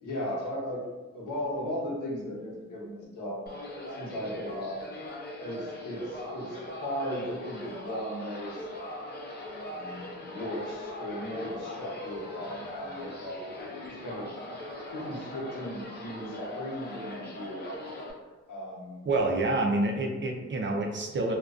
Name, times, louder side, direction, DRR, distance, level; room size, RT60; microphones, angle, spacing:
voice 1, 0.0-0.8 1.1-3.5 4.0-4.9 5.4-8.7 9.7-13.4 13.9-14.3 14.9-18.1 18.5-19.0, equal, 90° left, -4 dB, 0.9 m, -37 dB
sound 1, 3.5-18.1, left 1 dB, 35° left, 0.5 m, -40 dB
voice 2, 19.1-21.4, right 2 dB, 40° right, 2 dB, 0.4 m, -27 dB
2.4 x 2.1 x 2.4 m, 1.2 s
wide cardioid pair, 110°, 30 cm